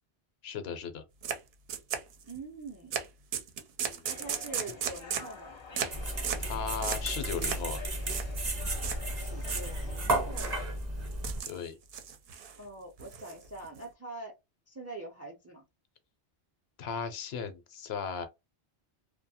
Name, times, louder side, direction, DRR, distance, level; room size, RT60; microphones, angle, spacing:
voice 1, 0.4-1.0 3.8-4.1 6.4-7.8 11.4-11.7 16.8-18.3, left 6 dB, 70° left, 0.8 m, -36 dB
sound 1, 1.2-1.4 1.7-2.4 2.9-3.1 3.3-5.3 5.7-6.0 6.2-6.5 6.8-7.1 7.4-7.7 8.0-8.3 8.8-9.0 9.4-10.0 10.3-10.6 11.1-11.6 11.9-12.6 13.0-13.8, right 7 dB, 70° right, 0.8 m, -35 dB
voice 2, 2.2-3.0 4.1-5.5 9.1-10.6 12.6-14.3 14.7-15.6, right 2 dB, 25° right, 0.3 m, -44 dB
sound 2, 4.0-10.7, left 4 dB, 35° left, 0.5 m, -48 dB
sound 3, 5.9-11.4, right 1 dB, 40° right, 0.9 m, -33 dB
2.6 x 2.2 x 2.7 m
omnidirectional pair, 1.1 m